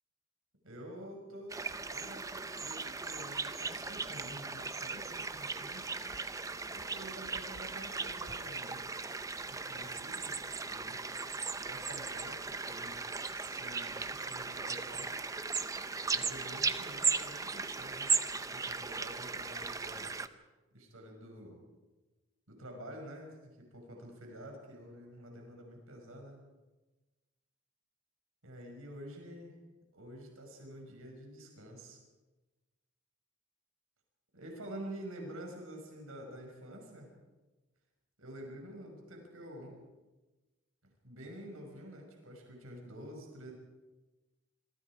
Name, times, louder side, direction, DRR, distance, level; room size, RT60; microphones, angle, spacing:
voice 1, 0.6-5.9 6.6-8.8 9.5-11.0 11.6-13.0 13.3-15.1 16.1-18.1 18.5-20.2 20.7-21.6 22.5-26.4 28.4-29.5 29.9-32.0 34.3-37.1 38.2-39.8 41.0-43.5, equal, 85° right, 2 dB, 5.9 m, -48 dB
sound 1, 1.5-20.3, right 4 dB, 15° right, 0.6 m, -37 dB
27.5 x 23.0 x 4.9 m, 1.2 s
head